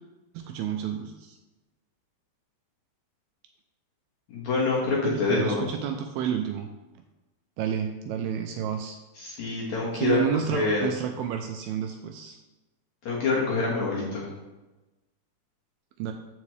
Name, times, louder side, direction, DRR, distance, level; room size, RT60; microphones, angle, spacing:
voice 1, 0.3-1.4 5.0-6.7 7.6-9.0 9.9-12.4 16.0-16.1, right 8 dB, 85° right, 4 dB, 2.3 m, -30 dB
voice 2, 4.3-5.6 9.2-10.2 10.5-10.9 13.1-14.3, left 3 dB, 55° left, -5 dB, 2.4 m, -26 dB
13.5 x 5.0 x 3.2 m, 1.1 s
omnidirectional pair, 4.7 m